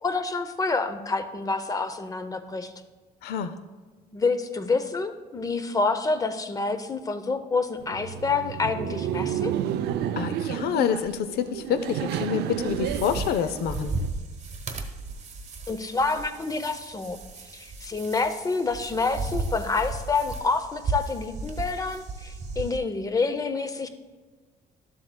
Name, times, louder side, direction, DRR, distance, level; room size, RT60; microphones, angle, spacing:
voice 1, 0.0-2.7 4.1-9.5 15.7-17.2 17.5-23.9, left 4 dB, 20° left, 9 dB, 0.6 m, -28 dB
voice 2, 3.2-3.6 10.2-14.0, left 7 dB, 70° left, 11 dB, 0.6 m, -27 dB
Laughter, 7.8-14.1, right 10 dB, 80° right, 0.4 m, -31 dB
sound 1, 12.5-22.8, right 3 dB, 40° right, 1.0 m, -35 dB
12.0 x 7.5 x 2.2 m, 1.4 s
cardioid pair, 110°, 17 cm